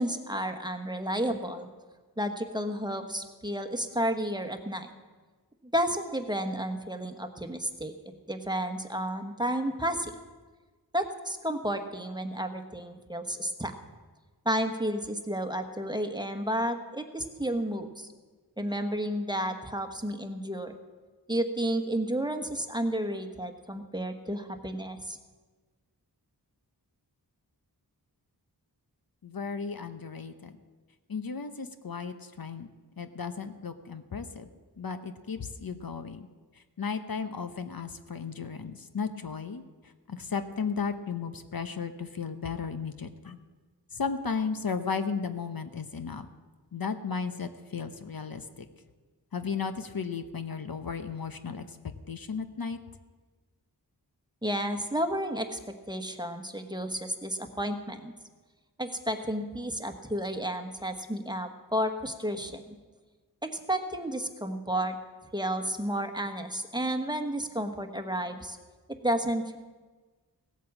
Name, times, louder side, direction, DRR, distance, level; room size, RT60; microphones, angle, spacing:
voice 1, 0.0-1.7 2.2-4.9 5.6-7.9 8.3-10.1 10.9-13.7 14.4-18.1 18.6-20.8 21.3-25.2 54.4-58.1 58.8-62.6 63.4-65.0 65.3-68.6 68.9-69.6, right 1 dB, 10° right, 6 dB, 1.2 m, -31 dB
voice 2, 29.2-30.6 31.1-32.7 33.0-34.5 34.8-36.3 36.8-39.6 40.1-43.4 43.9-46.3 46.7-48.4 49.3-51.6 52.1-52.8, left 5 dB, 55° left, 8 dB, 0.9 m, -34 dB
17.0 x 8.3 x 7.3 m, 1.3 s
wide cardioid pair, 60°, 41 cm